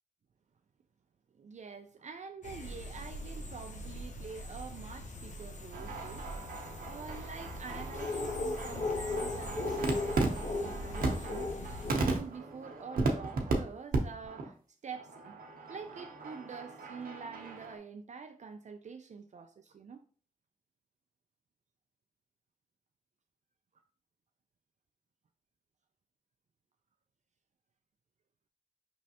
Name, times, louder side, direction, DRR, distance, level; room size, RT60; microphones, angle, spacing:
voice 1, 1.4-6.4 6.8-14.5 14.8-15.4 15.7-20.0, right 5 dB, 55° right, 0.4 m, -46 dB
sound 1, 2.4-11.9, left 2 dB, 55° left, 0.8 m, -38 dB
sound 2, 5.7-13.5 13.9-14.0 14.2-14.5 14.9-17.8, right 3 dB, 85° right, 0.8 m, -36 dB
5.2 x 3.1 x 2.8 m
cardioid pair, 60°, 14 cm